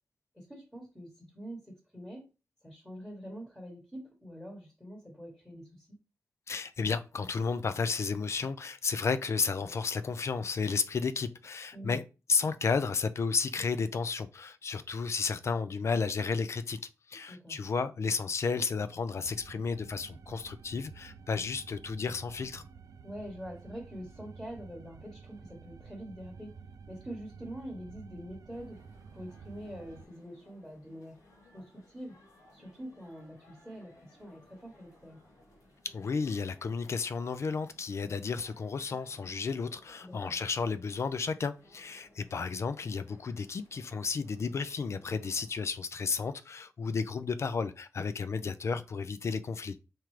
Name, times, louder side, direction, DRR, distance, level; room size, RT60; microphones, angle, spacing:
voice 1, 0.3-2.3 2.6-6.0 11.7-12.0 17.1-17.6 23.0-28.8 29.1-31.2 31.5-32.2 32.5-35.2 40.0-40.4, equal, ahead, 1.2 m, -45 dB
voice 2, 6.5-12.0 12.3-16.8 17.1-22.6 35.8-49.8, left 5 dB, 50° left, 0.4 m, -32 dB
sound 1, 19.2-30.1, right 5 dB, 75° right, 0.3 m, -51 dB
sound 2, 28.5-45.7, left 1 dB, 85° left, 2.5 m, -62 dB
4.5 x 3.7 x 3.1 m
wide cardioid pair, 150°, 6 cm